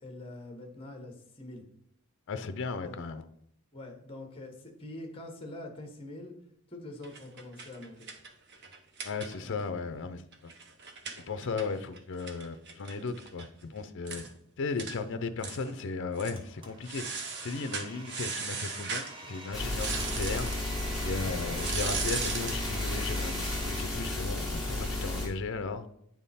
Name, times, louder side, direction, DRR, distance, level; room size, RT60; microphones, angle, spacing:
voice 1, 0.0-1.6 2.8-3.0 3.7-6.3 6.7-8.1 9.4-9.7, left 1 dB, 25° left, 1.1 m, -44 dB
voice 2, 2.3-3.3 9.0-10.5 11.3-14.2 14.6-20.5 21.0-25.8, left 4 dB, 55° left, 0.5 m, -36 dB
sound 1, 7.0-9.7 10.0-10.1 10.3-13.5 13.8-13.9 14.1-14.3 14.8-15.0 15.4-15.8 16.1-16.4 16.8-19.1 19.7-20.6 21.5-22.7, right 5 dB, 50° right, 0.7 m, -38 dB
Domestic sounds home sounds, 16.4-23.8, right 2 dB, 20° right, 0.9 m, -46 dB
sound 2, 19.5-25.3, left 2 dB, ahead, 1.4 m, -33 dB
9.0 x 3.6 x 4.1 m
head